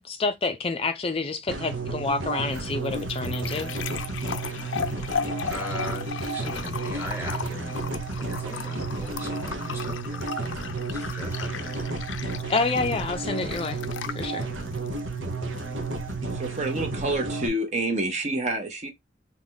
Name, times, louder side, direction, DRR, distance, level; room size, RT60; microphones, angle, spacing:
voice 1, 0.0-3.7 12.5-13.8 14.1-14.4, left 3 dB, 30° left, 0.4 m, -28 dB
sound 1, 1.5-17.5, right 3 dB, 80° right, 1.0 m, -32 dB
sound 2, 2.2-17.2, left 7 dB, 85° left, 0.5 m, -37 dB
voice 2, 4.4-12.1, equal, 10° right, 1.3 m, -41 dB
voice 3, 16.3-18.9, right 2 dB, 40° right, 0.8 m, -28 dB
3.5 x 3.0 x 3.9 m
head